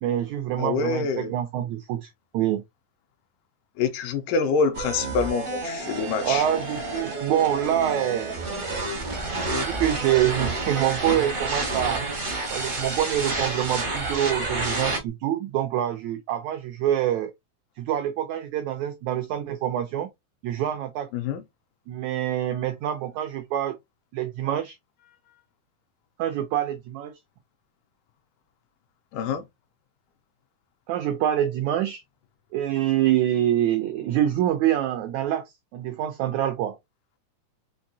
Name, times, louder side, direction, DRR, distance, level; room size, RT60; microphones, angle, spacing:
voice 1, 0.0-2.6 6.2-8.9 9.6-12.0 12.5-17.3 17.8-20.1 20.4-21.1 21.9-23.8 24.1-24.8 26.2-27.1 30.9-32.0 32.5-36.8, right 11 dB, 85° right, 1.6 m, -26 dB
voice 2, 0.6-1.3 3.8-6.5 21.1-21.4 29.1-29.4, left 5 dB, 80° left, 2.1 m, -26 dB
sound 1, 4.7-15.0, right 2 dB, 65° right, 0.5 m, -30 dB
5.6 x 2.6 x 2.6 m
omnidirectional pair, 3.9 m